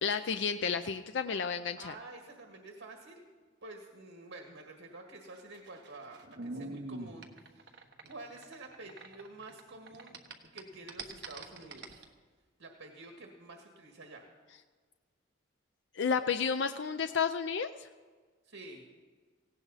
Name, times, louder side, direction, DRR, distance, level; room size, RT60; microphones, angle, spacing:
voice 1, 0.0-1.9 15.9-17.9, left 6 dB, 65° left, 9 dB, 0.5 m, -31 dB
voice 2, 1.8-3.3 3.6-7.8 8.1-10.1 10.5-12.0 12.6-14.2 18.4-18.8, right 2 dB, 85° right, 2 dB, 1.8 m, -49 dB
sound 1, 5.3-9.6 9.9-12.0, right 2 dB, 55° right, 1.2 m, -44 dB
18.0 x 16.0 x 4.1 m, 1.5 s
head